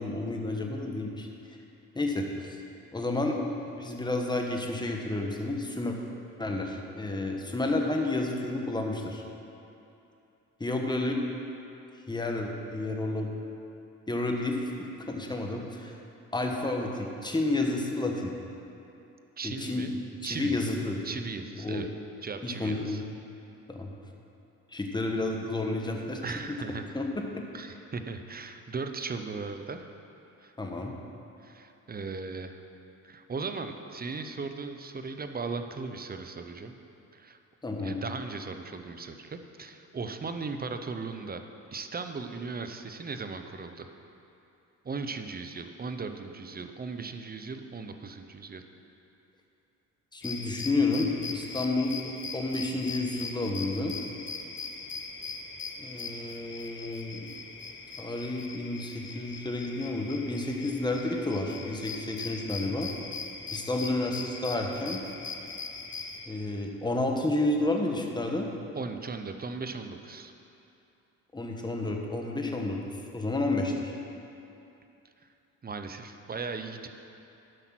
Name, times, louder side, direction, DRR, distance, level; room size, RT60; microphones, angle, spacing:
voice 1, 0.0-1.6 1.9-2.6 2.9-6.0 6.4-9.2 10.6-11.2 12.1-13.3 14.1-16.0 16.3-18.3 19.4-19.9 20.2-21.0 21.6-21.9 22.4-23.0 23.7-23.9 24.7-26.2 26.9-27.1 30.6-30.9 37.6-38.0 50.1-52.0 52.3-53.9 55.8-57.3 58.0-62.9 63.5-65.0 66.3-68.5 71.3-73.9, left 2 dB, 15° left, 1 dB, 1.3 m, -30 dB
voice 2, 19.4-19.9 20.2-20.6 21.0-21.9 22.2-23.0 26.2-27.0 27.5-29.9 30.4-30.5 31.4-32.6 33.0-36.7 37.1-37.4 37.8-41.4 41.7-43.9 44.8-48.6 68.7-70.3 75.6-76.9, right 4 dB, 30° right, 7 dB, 0.7 m, -37 dB
sound 1, 50.2-66.3, left 4 dB, 35° left, 1.0 m, -40 dB
11.0 x 5.9 x 6.0 m, 2.8 s
cardioid pair, 80°, 32 cm